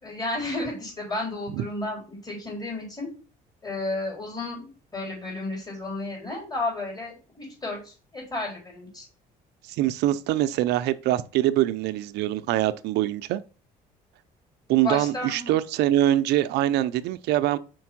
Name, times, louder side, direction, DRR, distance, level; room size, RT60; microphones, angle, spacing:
voice 1, 0.0-3.1 3.6-9.0 14.8-15.5, left 2 dB, 25° left, 4.1 m, -32 dB
voice 2, 9.7-13.4 14.7-17.6, right 13 dB, 85° right, 0.6 m, -24 dB
5.2 x 4.6 x 6.0 m
cardioid pair, 110°, 17 cm